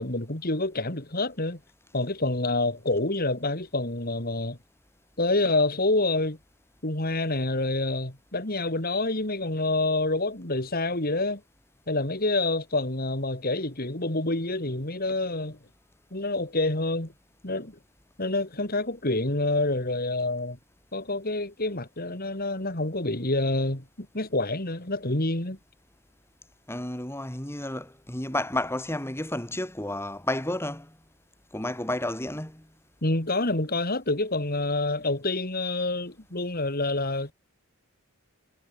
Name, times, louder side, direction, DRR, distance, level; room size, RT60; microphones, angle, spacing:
voice 1, 0.0-1.6 1.9-4.6 5.2-6.4 6.8-11.4 11.9-15.6 16.1-17.1 17.4-17.8 18.2-20.6 20.9-25.6 33.0-37.3, left 2 dB, 45° left, 3.5 m, -27 dB
voice 2, 26.7-30.9 31.5-32.7, left 1 dB, 10° left, 3.3 m, -31 dB
head